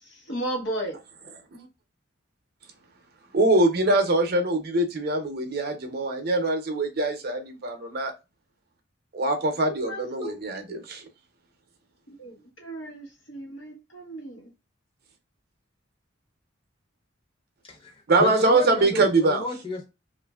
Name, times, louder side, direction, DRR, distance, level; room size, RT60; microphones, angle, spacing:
voice 1, 0.3-1.0 9.7-10.3 10.7-10.8 12.2-14.5, right 1 dB, 70° left, 1.1 m, -34 dB
voice 2, 3.3-8.1 9.1-11.0 18.1-19.4, right 2 dB, 55° right, 0.6 m, -23 dB
voice 3, 17.7-19.8, left 2 dB, 30° left, 0.9 m, -32 dB
3.0 x 2.4 x 2.3 m
head